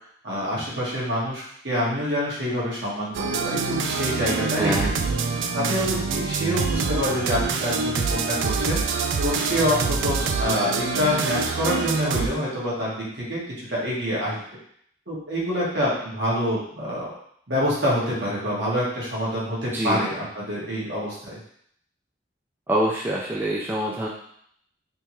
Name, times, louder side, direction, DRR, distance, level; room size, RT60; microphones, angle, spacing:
voice 1, 0.2-5.1 5.5-8.8 9.2-13.4 13.7-14.4 15.1-17.1 17.5-21.4, equal, 65° right, -6 dB, 1.4 m, -26 dB
sound 1, 3.1-12.3, right 5 dB, 85° right, 0.4 m, -26 dB
voice 2, 4.6-4.9 19.7-20.0 22.7-24.1, right 1 dB, 10° right, -4 dB, 0.3 m, -25 dB
3.5 x 2.8 x 3.0 m, 0.66 s
head